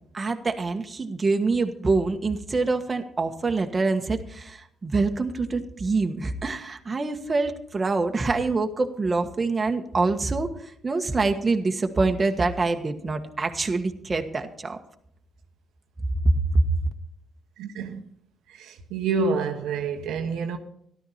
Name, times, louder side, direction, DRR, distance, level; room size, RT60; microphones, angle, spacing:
voice 1, 0.1-10.5 10.8-14.8 16.2-16.7, right 3 dB, 30° right, 1.4 m, -25 dB
voice 2, 17.6-18.0 18.5-20.6, right 4 dB, 85° right, 1.3 m, -28 dB
13.5 x 11.5 x 4.3 m
cardioid pair, 90°, 0 cm